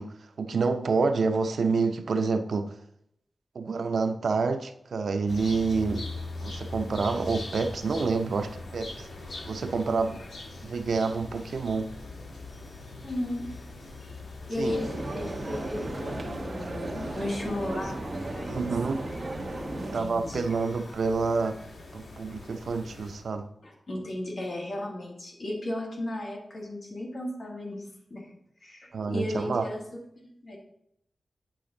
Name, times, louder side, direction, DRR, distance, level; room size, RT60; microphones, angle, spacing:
voice 1, 0.0-2.7 3.6-6.1 6.4-9.1 9.5-10.2 10.6-11.9 14.6-14.7 18.4-19.0 19.9-21.6 21.9-23.5 28.9-29.6, right 4 dB, 75° right, 0.5 m, -28 dB
sound 1, 5.3-23.3, left 2 dB, 85° left, 1.3 m, -42 dB
voice 2, 13.0-13.5 14.5-18.6 19.8-20.5 23.6-28.3 28.6-29.8 30.4-30.6, left 1 dB, 45° left, 1.6 m, -35 dB
sound 2, 14.7-20.0, right 2 dB, 40° right, 1.0 m, -35 dB
8.6 x 5.1 x 3.8 m
wide cardioid pair, 155°, 0 cm